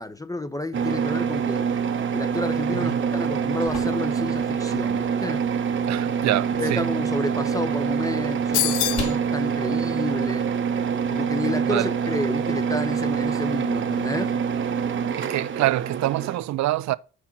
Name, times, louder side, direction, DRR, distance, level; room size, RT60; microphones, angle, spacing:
voice 1, 0.0-1.7 2.1-5.4 6.6-10.5 11.1-14.3, left 2 dB, 10° left, 0.5 m, -31 dB
sound 1, 0.7-16.4, right 6 dB, 40° right, 0.7 m, -25 dB
voice 2, 2.7-3.0 5.9-6.9 11.7-11.9 15.1-17.0, right 15 dB, 65° right, 0.5 m, -26 dB
sound 2, 3.2-11.1, left 4 dB, 65° left, 2.3 m, -42 dB
sound 3, 8.5-9.2, left 15 dB, 80° left, 0.5 m, -24 dB
6.2 x 4.2 x 5.8 m
cardioid pair, 90°, 30 cm